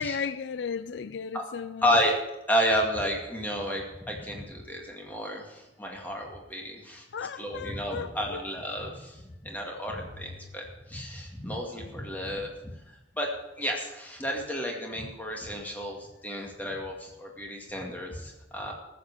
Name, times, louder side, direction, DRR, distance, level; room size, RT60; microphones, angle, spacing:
voice 1, 0.0-1.8 7.1-8.4, left 6 dB, 80° left, 0.4 m, -35 dB
voice 2, 1.8-2.2 2.5-7.0 7.4-12.7 13.2-18.7, equal, 10° left, 2.2 m, -31 dB
14.0 x 7.5 x 7.3 m
head